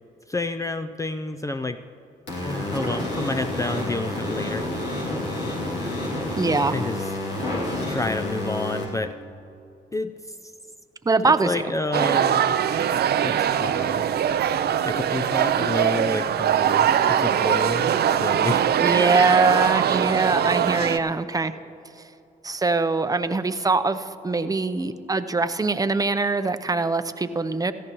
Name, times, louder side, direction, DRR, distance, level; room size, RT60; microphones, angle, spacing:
voice 1, 0.3-1.8 2.4-4.7 6.7-7.1 7.9-9.2 9.9-10.2 11.2-12.5 13.2-14.0 14.8-18.7, left 2 dB, 20° left, 9 dB, 0.5 m, -29 dB
sound 1, 2.3-8.8, left 1 dB, 85° left, 2.7 m, -29 dB
voice 2, 6.4-6.9 11.1-11.5 18.8-21.5 22.4-27.7, right 3 dB, 20° right, 10 dB, 0.7 m, -23 dB
sound 2, 11.9-21.0, right 9 dB, 65° right, 0.5 m, -22 dB
17.0 x 14.0 x 3.1 m, 2.7 s
supercardioid pair, 55°, 18 cm